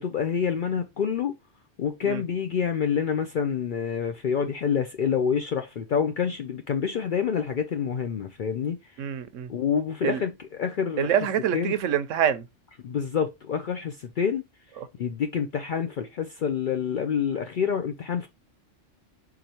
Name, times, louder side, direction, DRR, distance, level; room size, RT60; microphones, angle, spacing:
voice 1, 0.0-1.3 1.8-8.8 9.5-11.1 11.5-11.7 12.8-14.4 15.0-18.3, left 7 dB, 60° left, 0.5 m, -27 dB
voice 2, 9.0-9.5 10.0-10.2 11.0-12.4 14.8-14.9, right 9 dB, 80° right, 1.0 m, -26 dB
4.8 x 3.9 x 2.8 m
omnidirectional pair, 1.3 m